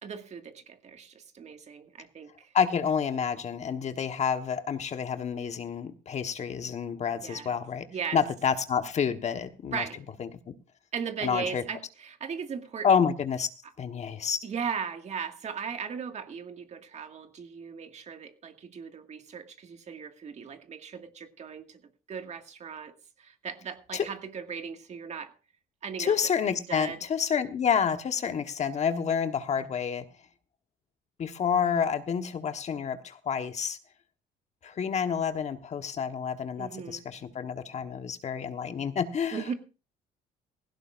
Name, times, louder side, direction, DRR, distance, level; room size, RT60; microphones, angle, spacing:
voice 1, 0.0-2.5 7.2-7.5 7.9-8.2 9.7-10.0 10.9-13.0 14.4-21.8 22.1-25.3 25.8-26.2 26.7-27.0 36.6-37.0 39.3-39.5, right 6 dB, 40° right, 6 dB, 1.9 m, -37 dB
voice 2, 2.5-7.8 8.1-9.8 10.2-10.3 11.2-11.6 12.8-13.5 13.8-14.4 23.9-24.0 26.0-30.0 31.2-33.8 34.6-39.5, left 7 dB, 40° left, 8 dB, 1.2 m, -29 dB
17.0 x 16.0 x 2.5 m, 0.33 s
cardioid pair, 110°, 17 cm